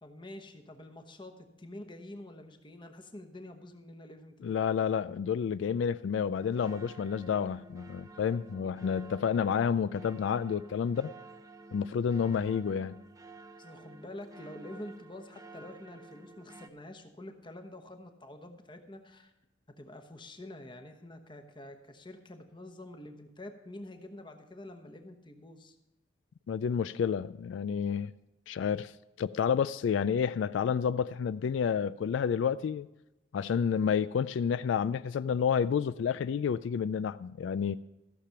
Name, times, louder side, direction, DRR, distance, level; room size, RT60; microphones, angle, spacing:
voice 1, 0.0-4.5 13.6-19.3 19.8-25.8, left 1 dB, 25° left, 1.0 m, -47 dB
voice 2, 4.4-11.1 11.7-13.0 26.5-28.1 28.5-28.9 29.2-32.9 33.3-37.8, left 7 dB, 85° left, 0.3 m, -30 dB
sound 1, 6.4-16.7, right 2 dB, 20° right, 0.6 m, -51 dB
14.5 x 6.8 x 5.7 m
head